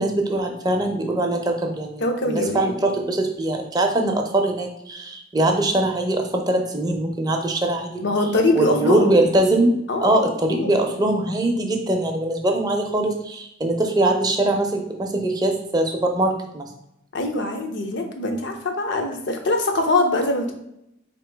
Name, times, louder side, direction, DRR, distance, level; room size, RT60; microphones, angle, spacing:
voice 1, 0.0-8.1 8.6-9.7 10.0-16.7, right 1 dB, 20° right, 2 dB, 0.5 m, -22 dB
voice 2, 2.0-3.0 8.0-9.1 9.9-10.1 10.5-10.7 17.1-20.5, left 2 dB, 60° left, 4 dB, 0.6 m, -23 dB
4.2 x 2.9 x 3.3 m, 0.81 s
head